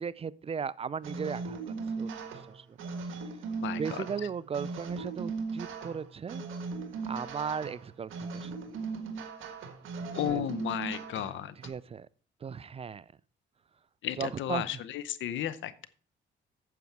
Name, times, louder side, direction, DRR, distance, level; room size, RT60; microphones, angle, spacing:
voice 1, 0.0-2.8 3.8-6.4 7.1-8.6 10.3-10.4 11.6-12.1 12.4-13.1 14.2-14.7, right 6 dB, 30° right, 0.3 m, -37 dB
sound 1, 1.0-11.7, right 4 dB, 80° right, 1.6 m, -38 dB
voice 2, 3.6-4.0 10.1-11.5 14.0-15.9, left 11 dB, 75° left, 0.8 m, -34 dB
9.4 x 7.0 x 4.7 m
cardioid pair, 90°, 20 cm